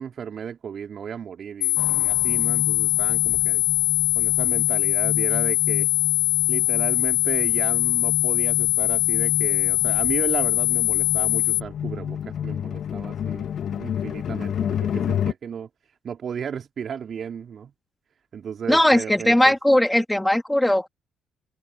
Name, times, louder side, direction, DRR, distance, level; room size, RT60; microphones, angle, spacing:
voice 1, 0.0-3.6 4.2-5.9 6.5-17.7 18.3-19.5, right 7 dB, 50° right, 3.7 m, -34 dB
sound 1, 1.6-11.6, left 20 dB, 75° left, 0.5 m, -22 dB
sound 2, 1.8-15.3, left 9 dB, 55° left, 2.0 m, -31 dB
voice 2, 18.7-20.9, left 1 dB, 10° left, 2.8 m, -19 dB
open air
hypercardioid pair, 45°, 0 cm